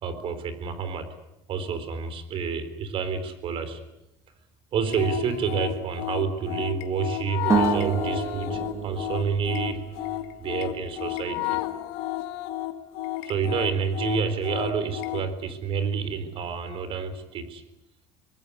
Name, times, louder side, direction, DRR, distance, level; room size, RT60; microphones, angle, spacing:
voice 1, 0.0-1.1 1.5-3.8 4.7-9.8 10.4-11.6 13.2-17.6, right 6 dB, 45° right, 11 dB, 3.9 m, -29 dB
sound 1, 4.9-15.3, left 15 dB, 75° left, 1.9 m, -32 dB
sound 2, 7.5-10.7, right 6 dB, 25° right, 1.4 m, -29 dB
23.5 x 19.5 x 9.8 m, 0.89 s
supercardioid pair, 120°, 12 cm